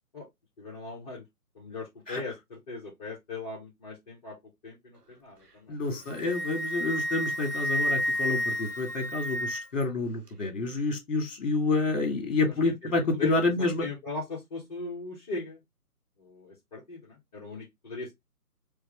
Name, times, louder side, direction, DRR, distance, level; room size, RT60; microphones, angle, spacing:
voice 1, 0.6-1.2 1.5-4.4 4.6-6.1 12.4-12.5 12.8-13.3 13.6-15.6 16.2-18.1, left 3 dB, 25° left, 1.0 m, -39 dB
voice 2, 5.7-13.9, left 3 dB, 55° left, 1.7 m, -28 dB
Wind instrument woodwind instrument, 5.9-9.8, equal, 85° right, 1.1 m, -30 dB
4.6 x 2.1 x 3.1 m
figure-of-eight pair, 145°, 45 cm